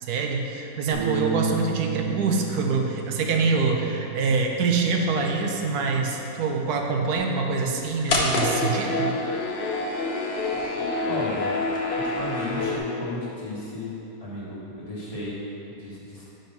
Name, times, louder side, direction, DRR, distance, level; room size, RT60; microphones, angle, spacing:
voice 1, 0.0-9.1, right 4 dB, 70° right, 2 dB, 1.2 m, -25 dB
Bass guitar, 0.9-7.2, right 6 dB, 50° right, 1.3 m, -34 dB
sound 1, 8.1-12.8, left 2 dB, 50° left, 0.8 m, -26 dB
voice 2, 11.0-11.5 11.9-13.9 14.2-16.2, left 1 dB, 25° left, -8 dB, 1.5 m, -34 dB
5.2 x 5.2 x 6.0 m, 3.0 s
omnidirectional pair, 1.7 m